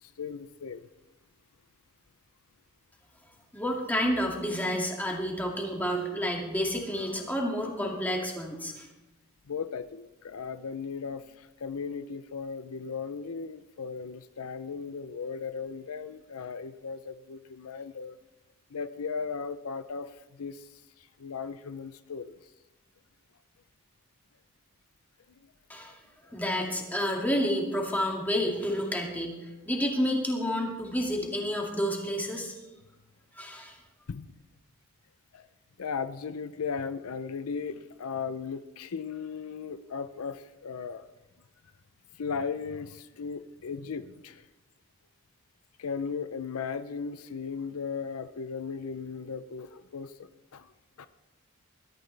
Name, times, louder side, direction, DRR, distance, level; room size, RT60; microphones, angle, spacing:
voice 1, 0.0-0.8 9.5-18.2 18.7-20.6 21.2-22.3 34.1-34.3 35.3-35.5 35.8-41.1 42.2-44.4 45.8-50.7 51.0-51.1, left 5 dB, 80° left, 12 dB, 0.6 m, -36 dB
voice 2, 3.5-8.9 25.7-26.0 26.3-32.5 33.3-33.8, equal, 10° left, 0 dB, 2.3 m, -30 dB
20.5 x 13.0 x 3.4 m, 1.0 s
head